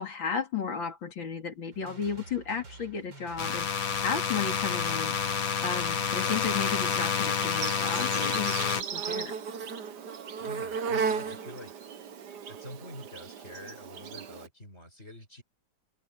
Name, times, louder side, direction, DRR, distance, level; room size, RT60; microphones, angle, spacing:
voice 1, 0.0-3.7 4.0-5.2 5.6-9.3, left 6 dB, 80° left, 3.3 m, -34 dB
sound 1, 1.7-6.7, right 3 dB, 80° right, 4.4 m, -49 dB
sound 2, 3.4-8.8, left 7 dB, 50° left, 1.7 m, -29 dB
voice 2, 6.2-6.6 10.4-11.7 12.5-15.4, left 1 dB, 35° left, 7.9 m, -46 dB
Insect, 6.8-14.5, right 6 dB, 65° right, 1.8 m, -36 dB
omnidirectional pair, 2.1 m